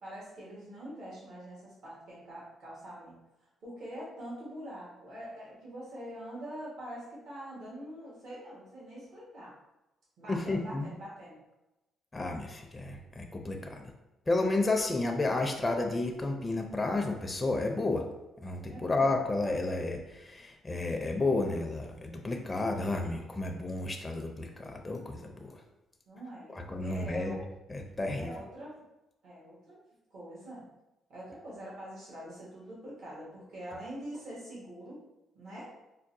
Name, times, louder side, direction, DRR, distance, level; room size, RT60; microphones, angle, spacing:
voice 1, 0.0-3.2 3.6-9.5 10.2-11.4 18.7-19.0 26.1-27.4 28.2-28.7 29.2-29.8 30.1-30.6 31.1-35.0 35.3-35.7, right 1 dB, 70° right, -6 dB, 1.3 m, -44 dB
voice 2, 10.3-10.9 12.1-13.9 14.3-18.1 18.4-25.6 26.5-27.4 27.7-28.3, left 2 dB, 20° left, 3 dB, 0.4 m, -31 dB
4.5 x 2.2 x 2.6 m, 0.97 s
cardioid pair, 90°, 0 cm